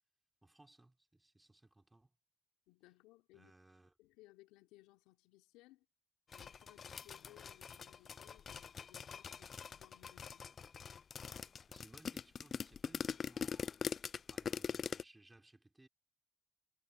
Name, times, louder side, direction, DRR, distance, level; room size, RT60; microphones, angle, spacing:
voice 1, 0.4-2.1 3.3-3.9 11.7-13.8 14.1-15.9, right 2 dB, 20° right, 5.3 m, -63 dB
voice 2, 2.7-3.5 4.0-5.8 6.3-10.5, left 19 dB, 85° left, 3.6 m, -64 dB
sound 1, 6.3-15.0, left 6 dB, 55° left, 0.5 m, -43 dB
hypercardioid pair, 40°, 0 cm